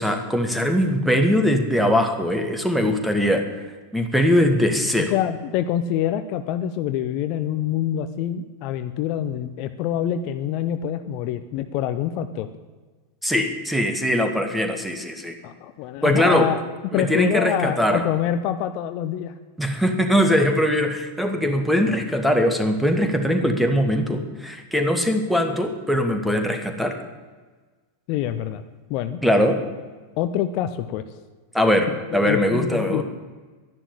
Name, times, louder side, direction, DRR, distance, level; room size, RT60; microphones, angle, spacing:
voice 1, 0.0-3.4 3.9-5.1 13.2-15.4 16.0-16.5 16.9-18.0 19.6-26.9 29.2-29.6 31.5-33.0, equal, ahead, 5 dB, 2.0 m, -21 dB
voice 2, 5.0-12.5 15.4-16.6 16.9-19.3 28.1-28.6 28.9-29.2 30.2-31.0 32.1-33.0, left 10 dB, 45° left, 10 dB, 0.8 m, -26 dB
12.0 x 11.0 x 8.8 m, 1.3 s
figure-of-eight pair, 90°, 0 cm